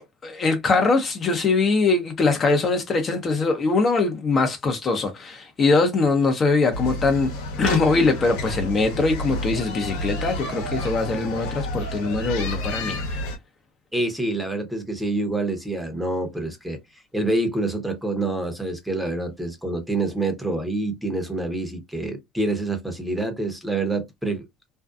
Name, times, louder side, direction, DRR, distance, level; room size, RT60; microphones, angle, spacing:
voice 1, 0.0-7.3 7.6-13.2, left 3 dB, 35° left, 0.7 m, -22 dB
sound 1, 6.7-13.4, left 1 dB, 80° left, 1.0 m, -30 dB
voice 2, 13.9-16.8 17.1-24.4, right 2 dB, 5° right, 0.9 m, -27 dB
2.6 x 2.3 x 2.3 m
supercardioid pair, 95°, 0 cm